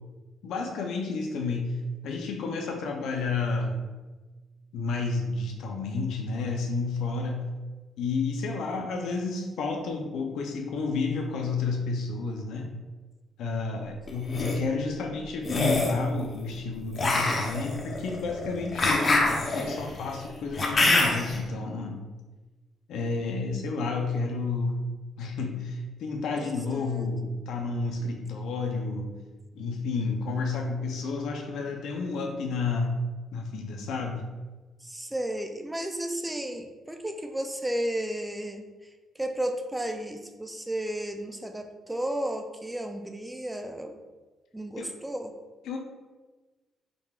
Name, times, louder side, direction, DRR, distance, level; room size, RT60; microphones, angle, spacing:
voice 1, 0.4-1.8 2.0-3.8 4.7-7.5 8.0-12.7 13.4-19.2 19.5-22.0 22.9-24.8 25.2-29.1 29.5-32.9 33.3-34.2 44.8-44.9 45.6-45.8, left 4 dB, 80° left, 2 dB, 0.6 m, -31 dB
sound 1, 14.1-14.5 15.4-16.0 17.0-21.4, left 2 dB, 40° left, 0.8 m, -25 dB
voice 2, 26.4-27.1 34.8-38.7 39.2-44.0 44.5-45.3, right 1 dB, 10° right, 5 dB, 0.4 m, -33 dB
5.1 x 3.5 x 2.4 m, 1.2 s
cardioid pair, 90°, 0 cm